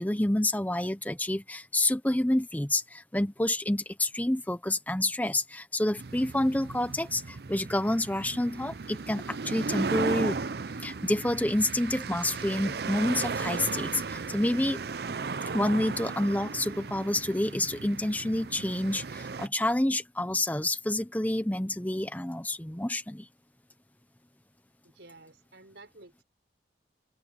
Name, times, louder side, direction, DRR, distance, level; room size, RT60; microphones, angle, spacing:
voice 1, 0.0-10.4 10.8-14.8 15.5-23.3, left 1 dB, 10° left, 0.8 m, -28 dB
sound 1, 6.0-19.5, right 4 dB, 60° right, 0.6 m, -36 dB
voice 2, 24.9-26.2, right 2 dB, 85° right, 5.1 m, -52 dB
head